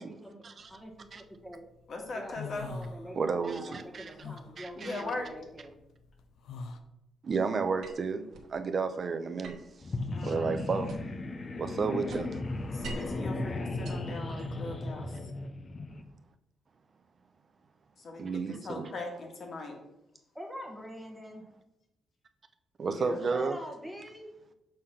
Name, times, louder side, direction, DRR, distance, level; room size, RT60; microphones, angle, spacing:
voice 1, 0.0-1.6 2.1-5.7 20.3-21.4 23.3-24.3, equal, ahead, 1.2 m, -45 dB
sound 1, 0.8-1.6 2.0-3.5 3.8-6.8, left 4 dB, 75° left, 0.6 m, -43 dB
voice 2, 1.9-2.7 4.8-5.3 10.1-10.5 12.7-15.2 18.0-19.7 22.9-23.2, left 2 dB, 45° left, 1.5 m, -39 dB
voice 3, 3.2-4.1 4.6-5.0 7.2-8.2 8.5-9.6 10.2-10.9 11.6-12.4 18.2-18.9 22.8-23.6, right 5 dB, 40° right, 0.6 m, -32 dB
sound 2, 7.8-8.5 9.4-11.3 11.6-13.2 13.7-14.8, right 4 dB, 70° right, 1.2 m, -47 dB
sound 3, 9.8-16.0, left 2 dB, 30° left, 0.5 m, -36 dB
6.5 x 3.8 x 5.6 m
cardioid pair, 145°, 0 cm